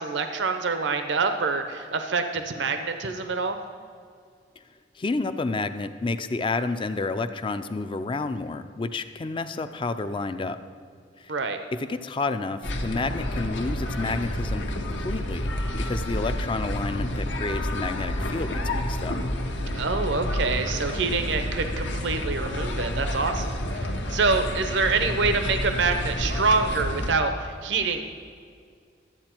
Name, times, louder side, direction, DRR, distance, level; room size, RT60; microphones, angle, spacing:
voice 1, 0.0-3.6 11.3-11.6 19.8-28.0, right 4 dB, 70° right, 7 dB, 0.6 m, -26 dB
voice 2, 5.0-10.6 11.2-11.3 11.8-19.2, left 3 dB, 25° left, 10 dB, 0.4 m, -30 dB
sound 1, 12.6-27.1, left 1 dB, 75° left, 1.1 m, -29 dB
12.0 x 8.2 x 4.4 m, 2.2 s
head